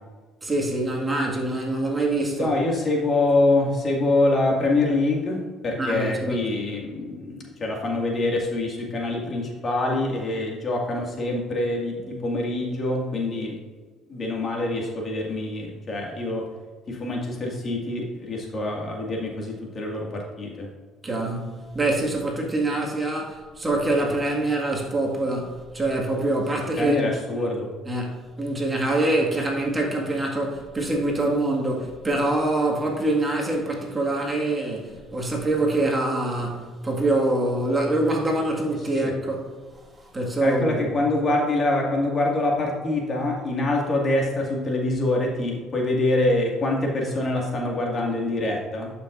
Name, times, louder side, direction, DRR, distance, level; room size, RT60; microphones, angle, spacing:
voice 1, 0.4-2.5 5.8-6.4 21.0-27.1 27.9-39.5 40.1-40.9, right 2 dB, 20° right, -1 dB, 1.8 m, -25 dB
voice 2, 2.4-5.4 5.6-13.5 14.1-16.4 16.9-20.7 26.5-27.7 38.9-39.1 40.4-48.9, left 2 dB, 40° left, -1 dB, 2.0 m, -25 dB
11.5 x 5.9 x 2.5 m, 1.5 s
supercardioid pair, 85°, 0 cm